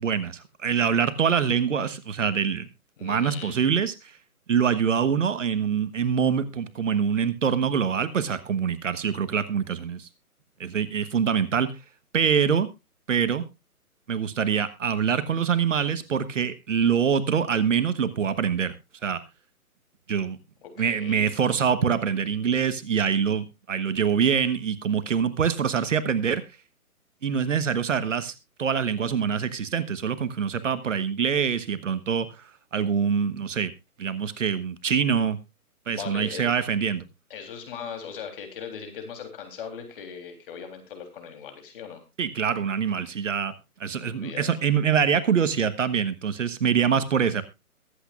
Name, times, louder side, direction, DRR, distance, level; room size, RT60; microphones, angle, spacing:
voice 1, 0.0-2.7 3.0-3.9 4.5-10.1 10.6-11.7 12.1-12.7 13.1-13.4 14.1-18.7 19.0-19.2 20.1-20.4 20.8-26.4 27.2-28.3 28.6-32.3 32.7-33.7 34.0-35.4 35.9-37.0 42.2-43.5 43.8-47.4, right 7 dB, 55° right, 12 dB, 1.4 m, -24 dB
voice 2, 3.0-3.6 20.6-21.3 35.9-36.4 37.3-42.0 43.9-44.5, left 7 dB, 35° left, 6 dB, 3.5 m, -39 dB
22.5 x 8.5 x 2.5 m, 0.25 s
hypercardioid pair, 155°, 45 cm